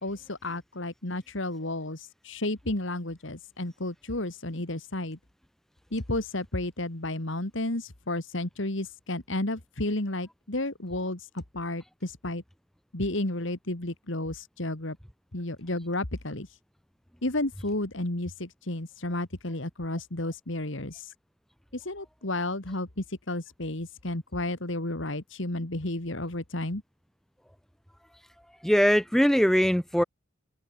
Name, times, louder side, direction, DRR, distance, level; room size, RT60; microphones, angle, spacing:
voice 1, 0.0-5.2 5.9-12.4 12.9-15.0 15.3-16.5 17.2-21.1 21.7-26.8, left 1 dB, 60° left, 2.3 m, -32 dB
voice 2, 28.6-30.0, equal, ahead, 0.9 m, -21 dB
open air
head